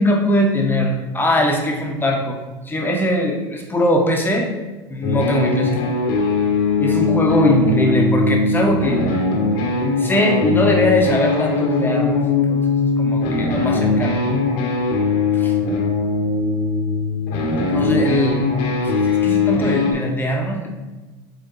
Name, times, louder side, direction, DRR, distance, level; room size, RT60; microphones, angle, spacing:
voice 1, 0.0-2.4 2.6-4.5 4.9-5.9 6.8-9.0 10.0-14.2 15.3-15.5 17.7-18.4 18.8-20.8, left 1 dB, 15° left, 1 dB, 1.2 m, -20 dB
sound 1, 5.0-19.9, left 4 dB, 70° left, 1.4 m, -20 dB
7.4 x 3.5 x 4.1 m, 1.2 s
supercardioid pair, 105°, 13 cm